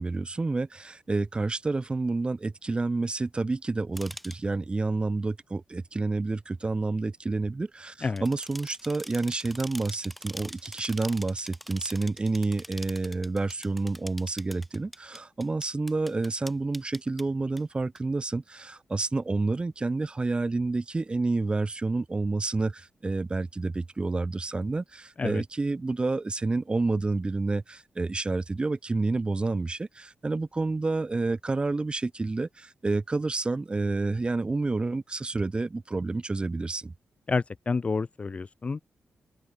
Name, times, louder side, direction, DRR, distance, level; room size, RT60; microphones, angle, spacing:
voice 1, 0.0-36.9, right 3 dB, 25° right, 1.8 m, -29 dB
sound 1, 4.0-4.4 8.1-17.2 17.6-17.7 18.0-18.1, equal, ahead, 5.7 m, -43 dB
voice 2, 37.3-38.8, left 4 dB, 35° left, 0.5 m, -29 dB
open air
cardioid pair, 90°, 4 cm